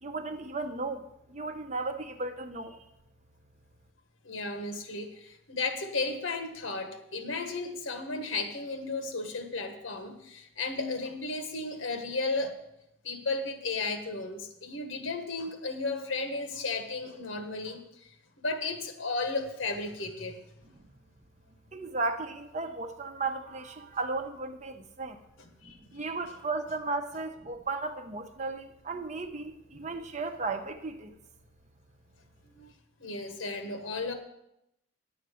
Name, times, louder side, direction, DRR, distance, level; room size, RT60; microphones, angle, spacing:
voice 1, 0.0-2.8 21.7-25.2 25.6-31.2, right 3 dB, 35° right, 7 dB, 0.8 m, -35 dB
voice 2, 4.2-12.6 13.0-18.1 18.4-20.4 25.4-26.0 32.5-32.7 33.0-34.1, left 3 dB, 75° left, 6 dB, 1.3 m, -34 dB
10.5 x 8.0 x 5.0 m, 0.83 s
head